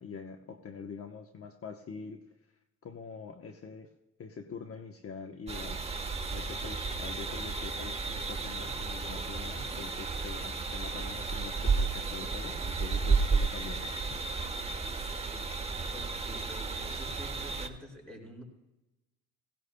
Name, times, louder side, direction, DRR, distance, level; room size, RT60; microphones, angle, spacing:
voice 1, 0.0-2.2 2.8-3.9 4.2-5.8 6.3-14.2, left 5 dB, 50° left, 4 dB, 1.0 m, -44 dB
sound 1, 5.5-17.7, right 4 dB, 20° right, 1.1 m, -33 dB
voice 2, 15.9-18.4, equal, 5° left, -1 dB, 5.7 m, -48 dB
17.5 x 17.5 x 2.2 m, 0.99 s
cardioid pair, 90°, 30 cm